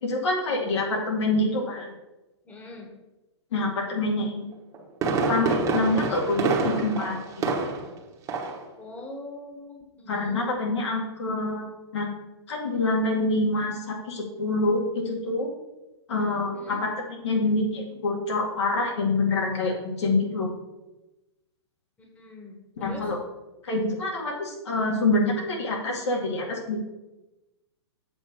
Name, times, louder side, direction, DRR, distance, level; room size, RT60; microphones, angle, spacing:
voice 1, 0.0-1.9 3.5-4.4 5.3-7.4 10.1-11.7 11.9-12.1 12.5-15.5 16.1-20.5 22.8-23.2 23.6-26.8, left 2 dB, 75° left, -1 dB, 2.2 m, -26 dB
voice 2, 2.4-2.9 8.8-10.5 16.5-16.8 22.0-23.1, left 2 dB, 10° left, 0 dB, 1.4 m, -42 dB
Fireworks, 4.5-8.0 8.3-8.7 9.0-9.1, right 3 dB, 20° right, 1.2 m, -27 dB
7.6 x 3.8 x 6.5 m, 1.0 s
hypercardioid pair, 135°, 14 cm